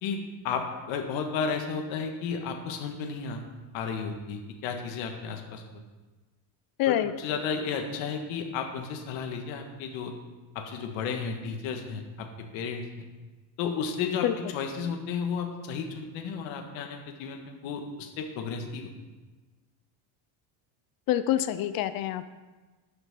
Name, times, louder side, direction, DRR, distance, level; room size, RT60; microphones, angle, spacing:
voice 1, 0.0-3.4 3.7-5.8 6.9-10.1 10.5-12.8 13.6-18.9, left 5 dB, 65° left, 4 dB, 1.7 m, -33 dB
voice 2, 6.8-7.1 14.2-14.3 21.1-22.2, left 12 dB, 50° left, 13 dB, 0.5 m, -26 dB
11.5 x 6.1 x 6.0 m, 1.3 s
cardioid pair, 160°, 48 cm